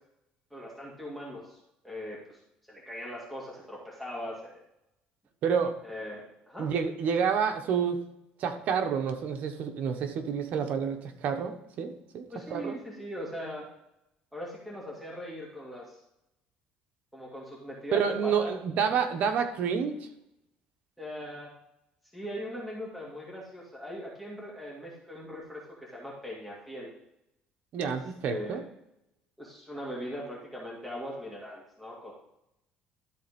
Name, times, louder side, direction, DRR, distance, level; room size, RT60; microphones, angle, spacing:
voice 1, 0.5-1.6 1.8-2.4 2.7-4.6 5.8-6.7 12.3-13.7 14.3-16.0 17.1-18.5 21.0-21.5 22.1-26.9 27.8-27.9 28.3-28.6 29.4-32.1, equal, ahead, -5 dB, 2.3 m, -40 dB
voice 2, 5.4-5.8 6.6-8.0 8.4-12.8 17.9-20.1 27.7-28.6, right 7 dB, 60° right, 6 dB, 1.2 m, -29 dB
12.5 x 4.2 x 5.3 m, 0.82 s
cardioid pair, 130°, 3 cm